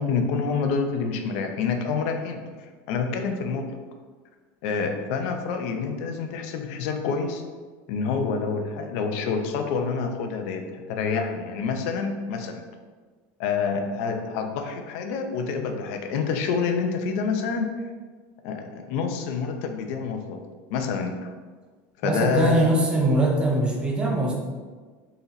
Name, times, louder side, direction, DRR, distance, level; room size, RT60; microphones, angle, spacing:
voice 1, 0.0-2.4 2.9-3.7 4.6-7.4 7.9-12.6 13.4-17.7 18.4-20.4 20.7-21.3 22.0-22.7, left 5 dB, 65° left, 5 dB, 0.6 m, -27 dB
voice 2, 22.0-24.3, right 1 dB, 15° right, -1 dB, 0.6 m, -22 dB
3.9 x 2.9 x 4.0 m, 1.4 s
cardioid pair, 160°, 7 cm